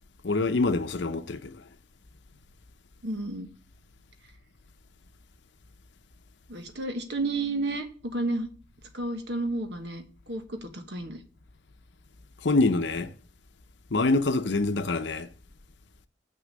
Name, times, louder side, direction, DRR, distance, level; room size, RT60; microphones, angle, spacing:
voice 1, 0.2-1.6 12.4-13.1 13.9-15.3, left 3 dB, 70° left, 0.7 m, -25 dB
voice 2, 3.0-3.5 6.5-8.5 8.9-11.2, right 2 dB, 65° right, 1.4 m, -31 dB
6.4 x 6.1 x 7.4 m
head